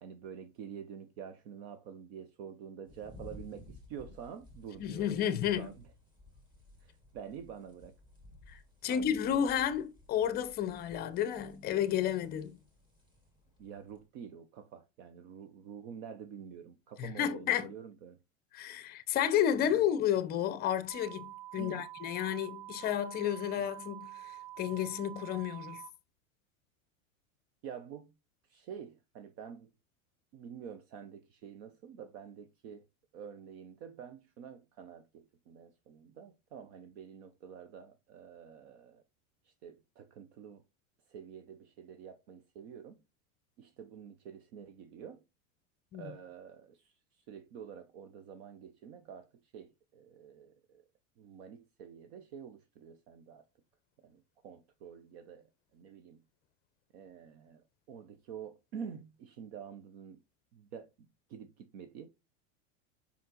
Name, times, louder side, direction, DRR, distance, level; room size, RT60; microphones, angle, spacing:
voice 1, 0.0-5.2 5.6-5.7 6.8-7.9 8.9-9.5 13.6-18.2 19.6-19.8 21.6-21.8 23.6-23.7 27.6-28.1 28.5-29.7 30.3-32.8 33.1-39.0 39.4-40.6 41.1-43.0 43.6-45.2 46.0-49.3 49.5-50.9 51.2-53.5 54.0-56.2 56.9-60.2 60.5-60.9 61.3-62.1, right 7 dB, 50° right, 0.8 m, -48 dB
sound 1, 2.9-14.1, left 1 dB, 10° right, 1.8 m, -56 dB
voice 2, 4.8-5.7 8.5-12.6 17.0-17.7 18.5-25.8 45.9-46.1, left 10 dB, 25° left, 0.6 m, -32 dB
sound 2, 20.9-25.9, right 15 dB, 75° right, 2.2 m, -47 dB
5.4 x 5.2 x 3.8 m
supercardioid pair, 150°, 40 cm